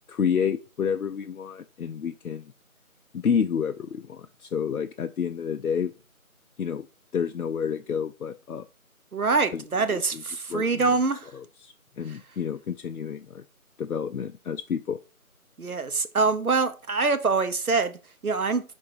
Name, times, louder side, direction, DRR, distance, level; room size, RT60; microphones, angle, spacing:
voice 1, 0.1-2.5 3.1-5.9 6.6-6.9 7.1-8.7 9.5-9.6 9.9-10.2 10.5-10.9 11.3-13.4 13.8-15.0, left 7 dB, 90° left, 0.6 m, -29 dB
voice 2, 9.1-11.3 12.1-12.2 15.6-18.6, right 4 dB, 80° right, 1.0 m, -25 dB
5.3 x 4.1 x 4.8 m
figure-of-eight pair, 170°, 42 cm